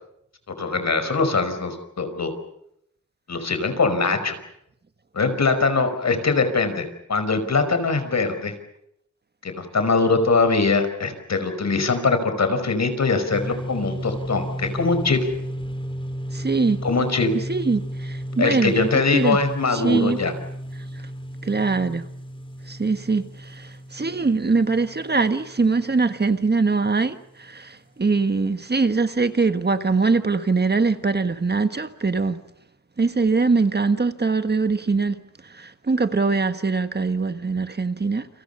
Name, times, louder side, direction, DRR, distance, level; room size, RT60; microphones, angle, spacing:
voice 1, 0.6-2.3 3.3-4.4 5.1-8.5 9.4-15.3 16.8-17.3 18.4-20.3, left 4 dB, 65° left, 5.3 m, -22 dB
sound 1, 13.3-26.8, equal, 15° left, 3.4 m, -34 dB
voice 2, 16.3-16.8 17.3-19.4 19.7-20.2 21.4-22.0 22.7-32.4 33.0-38.3, right 4 dB, 35° right, 1.5 m, -22 dB
29.5 x 28.0 x 5.6 m
wide cardioid pair, 125°, 29 cm